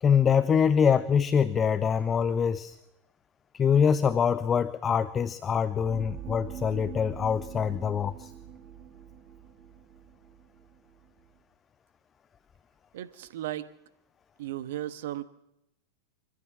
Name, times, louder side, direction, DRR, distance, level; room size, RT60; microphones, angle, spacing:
voice 1, 0.0-2.8 3.5-8.3, left 7 dB, 20° left, 16 dB, 0.7 m, -24 dB
sound 1, 5.4-11.4, right 9 dB, 35° right, 2.2 m, -45 dB
voice 2, 12.9-13.7 14.4-15.2, right 13 dB, 55° right, 14 dB, 1.2 m, -35 dB
25.0 x 15.0 x 7.6 m, 0.86 s
figure-of-eight pair, 90°, 0 cm